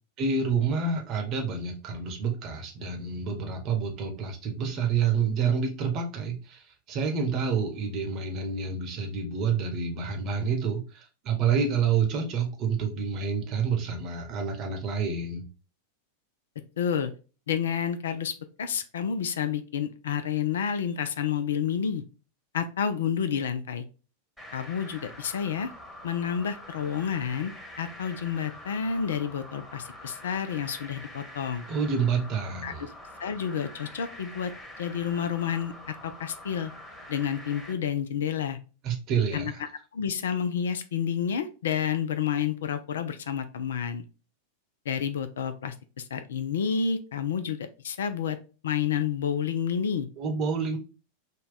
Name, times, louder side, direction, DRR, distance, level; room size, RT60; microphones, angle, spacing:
voice 1, 0.2-15.5 31.7-32.9 38.8-39.6 50.2-50.8, right 6 dB, 35° right, 3 dB, 0.9 m, -28 dB
voice 2, 16.8-17.1 17.5-22.0 22.5-23.8 24.5-25.7 26.0-27.5 27.8-31.7 32.6-32.7 33.2-34.5 34.8-36.7 37.1-38.6 39.3-39.5 39.9-44.0 44.9-48.4 48.6-50.1, left 7 dB, 60° left, 10 dB, 0.4 m, -29 dB
sound 1, 24.4-37.7, left 1 dB, 5° left, 1.1 m, -45 dB
3.9 x 2.2 x 3.8 m, 0.34 s
figure-of-eight pair, 90°, 0 cm